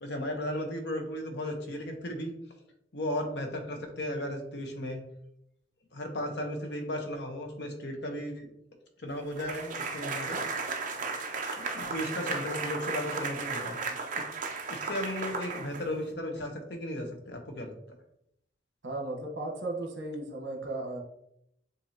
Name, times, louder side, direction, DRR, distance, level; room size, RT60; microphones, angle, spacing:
voice 1, 0.0-2.3 2.9-5.0 5.9-8.5 9.0-10.4 11.6-13.8 14.1-14.2 14.7-17.7, left 1 dB, 65° left, 4 dB, 0.9 m, -35 dB
sound 1, 9.4-16.1, right 4 dB, 45° right, 0.5 m, -35 dB
voice 2, 18.8-21.0, right 2 dB, 70° right, 1 dB, 1.2 m, -35 dB
7.2 x 2.7 x 2.8 m, 0.77 s
head